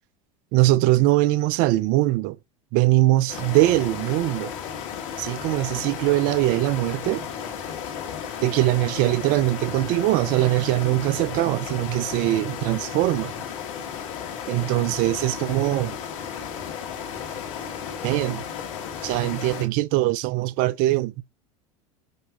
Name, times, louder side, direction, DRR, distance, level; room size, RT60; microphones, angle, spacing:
voice 1, 0.5-2.4 2.7-4.5 5.2-7.3 8.4-13.3 14.5-16.0 18.0-18.4 19.0-21.2, right 17 dB, 50° right, 0.6 m, -22 dB
sound 1, 3.3-19.7, left 8 dB, 65° left, 2.0 m, -34 dB
6.6 x 5.7 x 3.0 m
hypercardioid pair, 80°, 18 cm